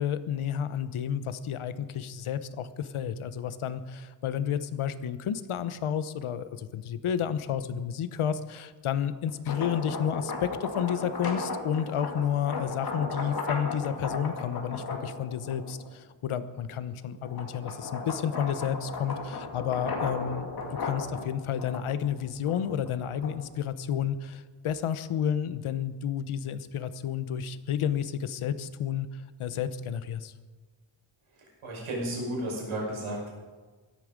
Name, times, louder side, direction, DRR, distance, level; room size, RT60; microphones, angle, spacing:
voice 1, 0.0-30.3, left 8 dB, 85° left, 13 dB, 1.0 m, -31 dB
sound 1, 9.3-15.9 16.4-23.6, left 3 dB, 45° left, 2.4 m, -36 dB
voice 2, 31.6-33.3, right 1 dB, 90° right, -2 dB, 5.9 m, -33 dB
16.5 x 13.0 x 5.2 m, 1.4 s
wide cardioid pair, 165°, 48 cm